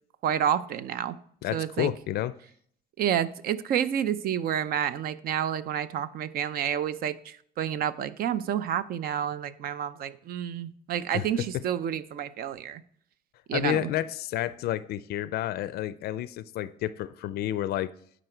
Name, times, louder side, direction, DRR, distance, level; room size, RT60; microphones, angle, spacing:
voice 1, 0.2-1.2 1.5-1.9 3.0-12.8 13.5-13.9, right 9 dB, 60° right, 14 dB, 0.6 m, -29 dB
voice 2, 1.4-2.3 11.1-11.2 13.5-17.9, left 13 dB, 70° left, 16 dB, 0.4 m, -30 dB
11.5 x 5.1 x 4.5 m, 0.62 s
cardioid pair, 110°, 17 cm